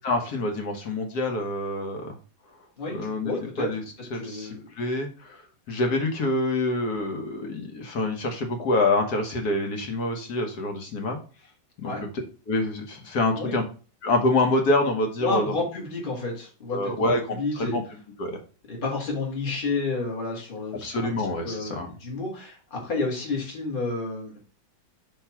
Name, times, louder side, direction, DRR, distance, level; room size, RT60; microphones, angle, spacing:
voice 1, 0.0-2.2 2.9-3.3 3.6-3.8 4.1-5.4 5.7-11.2 11.8-11.9 12.5-13.6 14.0-15.5 16.7-17.8 18.2-18.4 20.8-21.9, left 2 dB, 60° left, 3 dB, 1.5 m, -26 dB
voice 2, 2.8-3.7 4.1-4.6 11.8-12.0 13.4-13.6 15.2-17.8 18.7-21.1 21.4-24.4, left 3 dB, 25° left, -2 dB, 1.9 m, -30 dB
5.3 x 3.4 x 5.7 m, 0.36 s
omnidirectional pair, 2.1 m